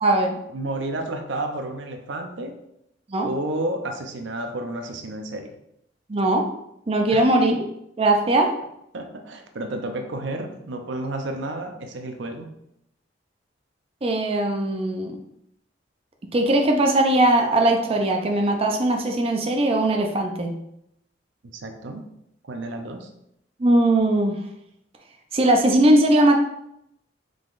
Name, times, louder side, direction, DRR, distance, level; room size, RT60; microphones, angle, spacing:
voice 1, 0.0-0.4 3.1-3.3 6.1-6.5 6.9-7.6 8.0-8.5 14.0-15.2 16.3-20.5 23.6-24.4 25.3-26.4, right 1 dB, 30° right, 2 dB, 0.5 m, -19 dB
voice 2, 0.5-2.6 3.2-5.5 7.1-7.3 8.9-12.5 21.5-22.0 22.4-23.1, right 2 dB, 80° right, 5 dB, 0.6 m, -31 dB
5.0 x 3.8 x 2.5 m, 0.78 s
head